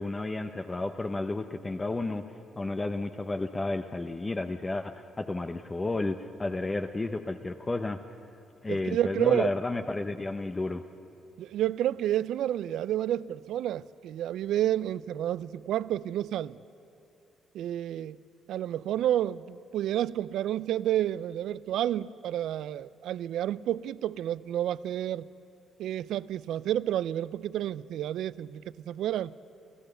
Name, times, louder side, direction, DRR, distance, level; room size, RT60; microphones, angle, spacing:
voice 1, 0.0-8.0 8.6-10.8, left 2 dB, 20° left, 0.7 m, -32 dB
voice 2, 8.7-9.5 11.4-16.6 17.5-18.2 18.5-25.3 25.8-29.3, right 12 dB, 80° right, 0.4 m, -30 dB
29.5 x 14.0 x 6.8 m
cardioid pair, 90°, 0 cm